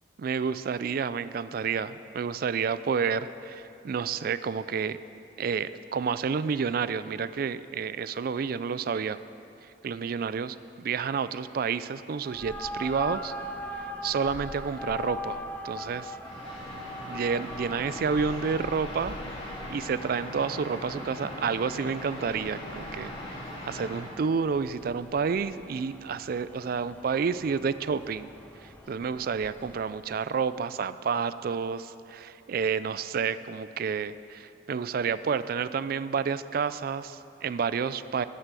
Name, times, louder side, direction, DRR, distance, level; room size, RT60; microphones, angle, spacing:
voice 1, 0.2-5.0 5.4-9.2 9.8-13.3 14.0-16.1 17.1-19.2 19.7-28.3 28.6-38.2, right 6 dB, 55° right, 14 dB, 0.4 m, -30 dB
sound 1, 12.2-30.1, left 1 dB, 10° left, 0.9 m, -42 dB
sound 2, 16.2-24.0, left 1 dB, 35° left, 2.5 m, -40 dB
13.5 x 8.1 x 6.8 m, 2.7 s
head